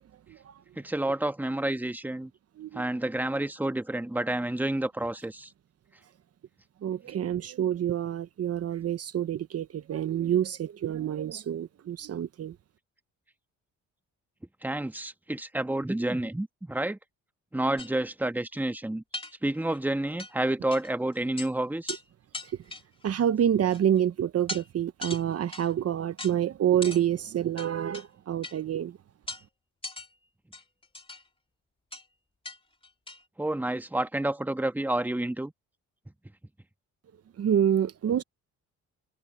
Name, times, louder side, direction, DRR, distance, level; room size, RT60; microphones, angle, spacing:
voice 1, 0.8-2.3 2.7-5.5 14.6-17.0 17.5-19.0 19.4-22.0 33.4-35.5, right 1 dB, 5° right, 1.4 m, -29 dB
voice 2, 6.8-12.6 23.0-29.0 37.4-38.2, right 10 dB, 55° right, 1.0 m, -27 dB
sound 1, 17.8-17.9 18.6-18.7 19.1-19.8 20.2-20.3 20.7-20.9 21.2-21.5 21.9-22.0 22.3-23.1 23.7-24.0 24.5-24.7 25.0-25.7 26.2-26.3 26.8-27.0 27.6-28.1 28.4-28.6 29.3-29.4 29.8-30.1 30.5-31.2 31.9-32.0 32.5-32.6 32.8-33.2, left 2 dB, 20° left, 3.4 m, -38 dB
cardioid pair, 90°, 30 cm